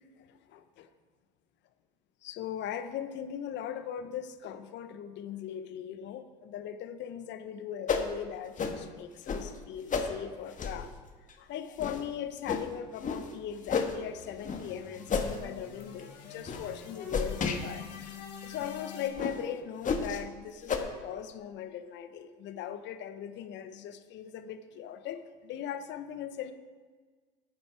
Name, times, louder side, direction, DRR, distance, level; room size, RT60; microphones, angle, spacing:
voice 1, 0.3-0.9 2.2-10.9 11.4-17.9 18.4-26.5, left 9 dB, 60° left, 10 dB, 1.1 m, -39 dB
sound 1, 7.9-8.1 8.6-8.8 9.3-9.4 9.9-10.1 10.6-10.8 11.3-11.4 11.8-12.0 12.5-12.6 13.0-13.2 13.7-13.9 14.4-14.6 15.1-15.4 15.8-16.0 16.5-16.6 17.1-17.6 18.0-18.1 18.6-18.7 19.2-19.4 19.8-20.2 20.7-20.8, left 5 dB, 35° left, 1.7 m, -30 dB
sound 2, 12.8-19.1, left 7 dB, 85° left, 2.0 m, -48 dB
11.5 x 9.5 x 4.8 m, 1.5 s
hypercardioid pair, 75°, 21 cm